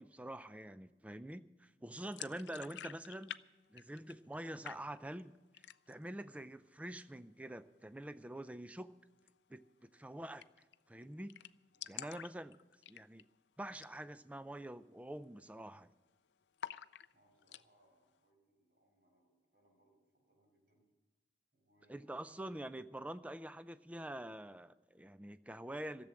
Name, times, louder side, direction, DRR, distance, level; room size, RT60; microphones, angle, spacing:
voice 1, 0.0-3.4 3.7-8.9 9.5-10.4 10.9-11.4 11.9-12.6 12.9-13.3 13.6-15.9 21.9-26.1, right 1 dB, 10° right, 13 dB, 0.4 m, -46 dB
sound 1, 2.1-3.4 3.7-4.4 4.6-5.2 5.5-6.1 6.4-6.5 6.8-7.5 9.2-9.3 9.6-9.7 10.0-10.1 10.4-10.8 11.0-11.1 11.3-13.4 13.7-14.0 14.3-14.4 15.0-15.2 15.5-16.1 16.6-17.6, left 10 dB, 80° left, 0.4 m, -49 dB
voice 2, 11.7-12.2 17.1-20.9 21.5-22.4, right 1 dB, 60° right, 0 dB, 5.5 m, -73 dB
14.0 x 7.7 x 9.8 m, 1.2 s
head